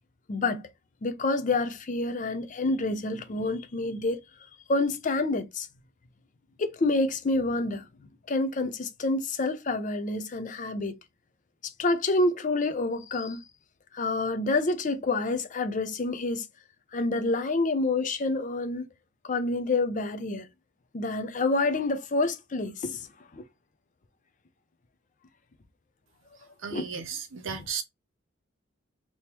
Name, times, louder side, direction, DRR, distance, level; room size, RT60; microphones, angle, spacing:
voice 1, 0.3-0.6 1.0-4.2 4.7-5.7 6.6-7.9 8.3-11.0 11.6-13.4 13.9-16.5 16.9-18.9 19.2-20.5 20.9-23.1 23.3-23.5 26.7-26.9, left 2 dB, 40° left, 0.5 m, -28 dB
voice 2, 26.4-27.8, right 6 dB, 70° right, 0.8 m, -35 dB
3.5 x 2.8 x 2.9 m
head